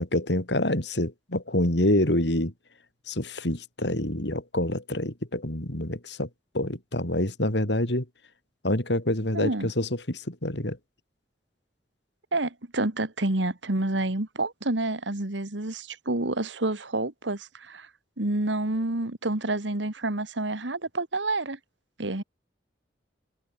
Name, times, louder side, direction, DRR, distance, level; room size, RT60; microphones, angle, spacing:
voice 1, 0.0-2.5 3.1-6.3 6.5-8.1 8.6-10.8, left 1 dB, 65° left, 4.3 m, -27 dB
voice 2, 9.3-9.7 12.3-17.9 18.2-21.6 22.0-22.2, right 2 dB, 80° right, 2.2 m, -28 dB
head